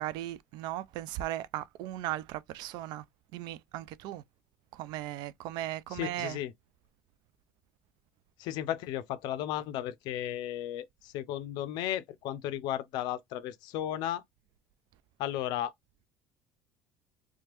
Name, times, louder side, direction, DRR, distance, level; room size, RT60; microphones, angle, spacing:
voice 1, 0.0-3.0 3.3-4.2 4.7-6.4, right 14 dB, 65° right, 0.3 m, -37 dB
voice 2, 5.9-6.5 8.4-14.2 15.2-15.7, left 12 dB, 65° left, 0.4 m, -34 dB
2.9 x 2.2 x 2.9 m
hypercardioid pair, 70°, 8 cm